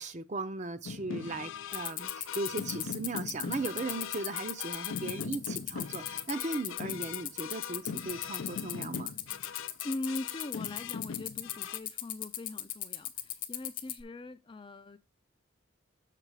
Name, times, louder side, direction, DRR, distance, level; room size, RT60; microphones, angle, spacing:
voice 1, 0.0-9.1, right 3 dB, 35° right, 0.5 m, -37 dB
sound 1, 0.8-11.8, left 6 dB, 85° left, 0.4 m, -41 dB
sound 2, 1.7-14.0, left 14 dB, 45° left, 0.8 m, -36 dB
voice 2, 9.8-15.0, left 2 dB, 25° left, 0.3 m, -41 dB
6.7 x 4.9 x 4.7 m
head